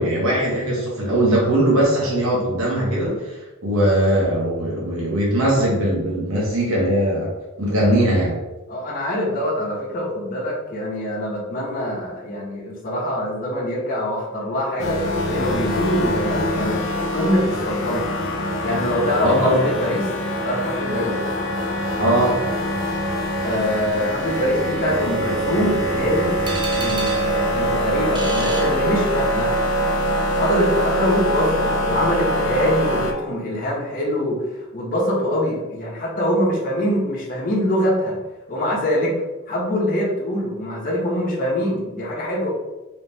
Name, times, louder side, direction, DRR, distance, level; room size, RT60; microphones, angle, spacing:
voice 1, 0.0-7.3 7.6-8.4 19.2-19.6 22.0-22.4, right 1 dB, 80° right, -4 dB, 1.4 m, -20 dB
voice 2, 8.7-16.8 17.1-18.1 18.6-20.1 20.4-21.1 23.4-26.3 26.8-29.5 30.3-38.2 38.5-39.1 39.5-42.5, equal, 40° left, -6 dB, 1.0 m, -24 dB
sound 1, 14.8-33.1, equal, 65° left, 0.6 m, -23 dB
sound 2, 26.5-29.5, right 3 dB, 20° right, 0.4 m, -33 dB
3.3 x 3.0 x 3.4 m, 1.1 s
head